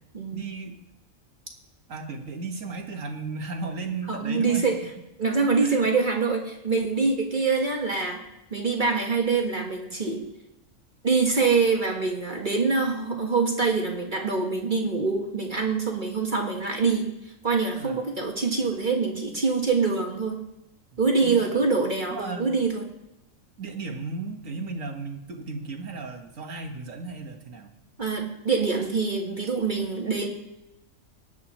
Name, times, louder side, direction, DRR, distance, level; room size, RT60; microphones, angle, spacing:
voice 1, 0.3-0.8 1.9-4.7 5.6-5.9 17.8-18.0 20.9-21.6 22.1-22.5 23.6-27.7, right 3 dB, 75° right, 3 dB, 1.8 m, -35 dB
voice 2, 4.1-4.8 5.2-8.2 8.5-10.2 11.0-17.1 17.4-20.4 21.0-22.9 28.0-30.3, right 4 dB, 40° right, 1 dB, 1.5 m, -25 dB
20.0 x 9.3 x 3.0 m, 0.91 s
omnidirectional pair, 1.4 m